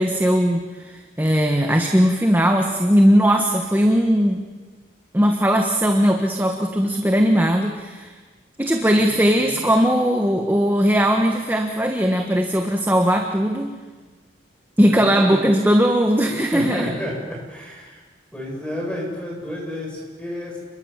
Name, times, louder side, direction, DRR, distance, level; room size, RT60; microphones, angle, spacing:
voice 1, 0.0-4.4 5.1-8.1 8.6-13.7 14.8-16.9, equal, 10° right, 3 dB, 1.4 m, -19 dB
voice 2, 9.0-9.6 14.8-15.5 16.2-18.0 18.3-20.6, left 1 dB, 5° left, -2 dB, 7.9 m, -31 dB
29.5 x 22.0 x 7.4 m, 1.4 s
head